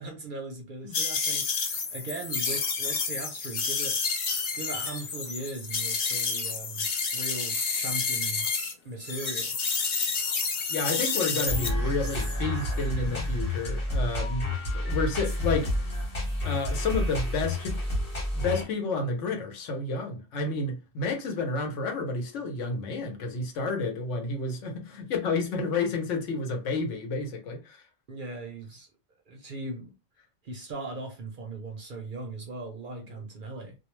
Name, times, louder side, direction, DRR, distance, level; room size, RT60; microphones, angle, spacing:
voice 1, 0.0-1.5 1.9-4.0 4.6-8.5 8.8-9.5 28.1-28.9 29.3-29.9 30.4-33.8, right 2 dB, 55° right, 0.6 m, -38 dB
sound 1, 0.9-8.7 9.0-11.7, left 5 dB, 60° left, 0.4 m, -29 dB
voice 2, 10.7-14.5 14.7-15.7 16.4-17.8 18.3-27.8, left 3 dB, 75° left, 1.0 m, -30 dB
sound 2, 11.5-18.6, left 1 dB, 35° left, 1.1 m, -29 dB
2.3 x 2.0 x 3.0 m
omnidirectional pair, 1.3 m